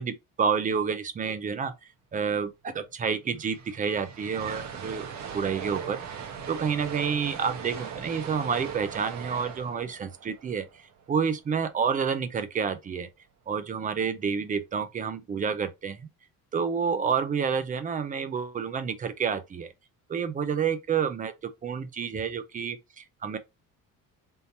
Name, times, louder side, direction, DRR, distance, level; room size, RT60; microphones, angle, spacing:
voice 1, 0.0-1.7 2.1-5.1 5.3-6.0 6.5-10.7 11.1-13.1 13.5-16.1 16.5-19.7 20.1-23.4, right 6 dB, 25° right, 0.4 m, -29 dB
sound 1, 2.9-3.0 3.2-11.4, right 7 dB, 55° right, 1.1 m, -39 dB
3.6 x 2.8 x 4.0 m
cardioid pair, 170°, 33 cm